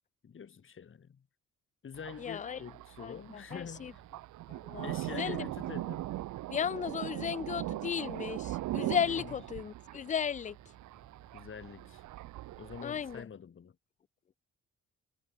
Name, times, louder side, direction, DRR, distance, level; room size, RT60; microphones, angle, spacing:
voice 1, 0.2-1.3 1.8-4.0 4.8-6.1 9.1-9.4 11.3-12.0 12.6-13.8, left 7 dB, 40° left, 2.0 m, -46 dB
Thunder, 1.9-13.2, right 16 dB, 75° right, 0.7 m, -40 dB
voice 2, 2.2-2.6 3.0-3.9 4.6-5.4 6.5-10.6 12.8-13.3, left 8 dB, 25° left, 0.4 m, -35 dB
sound 1, 3.7-13.2, right 3 dB, 15° right, 3.6 m, -66 dB
cardioid pair, 90°, 30 cm